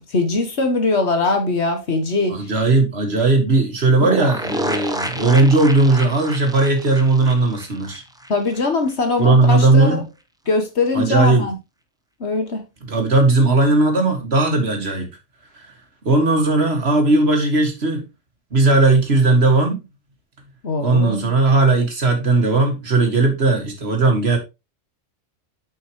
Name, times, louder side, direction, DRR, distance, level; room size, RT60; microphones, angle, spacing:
voice 1, 0.0-2.4 8.3-10.0 10.5-11.6 12.2-12.6 20.6-21.3, left 3 dB, 60° left, 1.8 m, -21 dB
voice 2, 2.3-8.0 9.2-10.1 10.9-11.5 12.8-15.1 15.5-15.7 16.1-18.1 18.5-19.8 20.8-24.4, right 2 dB, 55° right, 2.1 m, -17 dB
sound 1, 4.0-8.6 8.9-9.0 9.2-9.3, equal, 5° right, 0.6 m, -29 dB
9.3 x 5.6 x 3.0 m
omnidirectional pair, 1.3 m